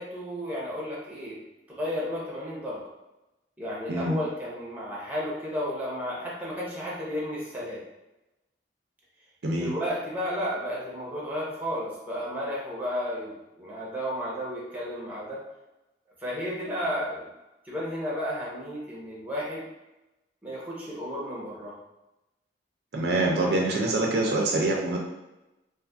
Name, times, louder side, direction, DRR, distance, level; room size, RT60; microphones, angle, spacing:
voice 1, 0.0-1.4 1.7-2.8 3.6-7.8 9.6-15.4 16.2-17.3 17.6-19.6 20.4-21.8, equal, 10° right, -6 dB, 0.7 m, -33 dB
voice 2, 22.9-25.0, right 2 dB, 60° right, -1 dB, 0.5 m, -25 dB
2.5 x 2.4 x 2.6 m, 0.98 s
head